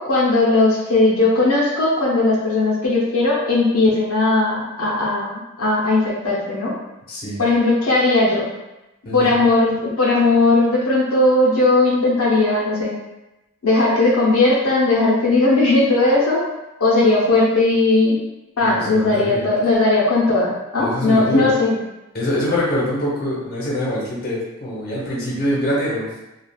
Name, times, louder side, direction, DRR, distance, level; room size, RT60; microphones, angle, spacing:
voice 1, 0.0-6.7 7.4-8.5 9.1-12.9 13.6-16.4 16.8-18.2 18.6-21.8, left 2 dB, 85° left, -5 dB, 0.8 m, -17 dB
voice 2, 7.1-7.4 9.0-9.4 18.6-19.4 20.8-21.5 22.1-26.1, equal, 45° left, -4 dB, 0.8 m, -24 dB
3.2 x 2.3 x 2.3 m, 0.96 s
head